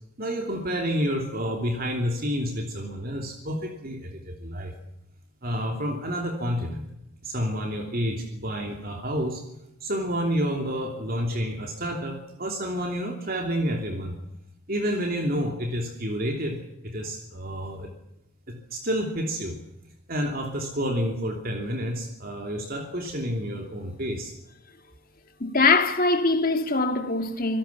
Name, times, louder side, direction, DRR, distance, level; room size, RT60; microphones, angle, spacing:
voice 1, 0.2-4.7 5.4-6.8 7.2-9.4 9.8-14.2 14.7-16.6 16.8-17.9 18.5-19.6 20.1-24.3, equal, 45° right, 3.0 m, -29 dB
voice 2, 25.4-27.6, left 3 dB, 40° left, 2.2 m, -22 dB
26.5 x 17.5 x 7.3 m
head